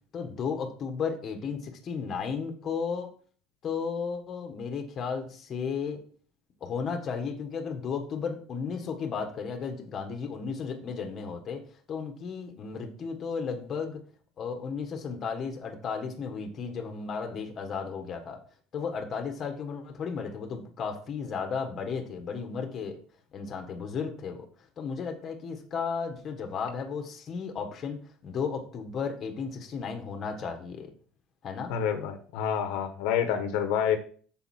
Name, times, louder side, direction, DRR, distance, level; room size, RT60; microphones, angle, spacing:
voice 1, 0.1-3.1 3.6-6.0 6.6-11.6 11.9-14.0 14.4-18.4 18.7-23.0 23.3-24.5 24.8-30.9 31.4-31.7, left 5 dB, 30° left, 4 dB, 1.5 m, -34 dB
voice 2, 31.7-34.0, left 8 dB, 70° left, 7 dB, 1.3 m, -28 dB
8.0 x 6.9 x 4.4 m, 0.43 s
cardioid pair, 165°, 0 cm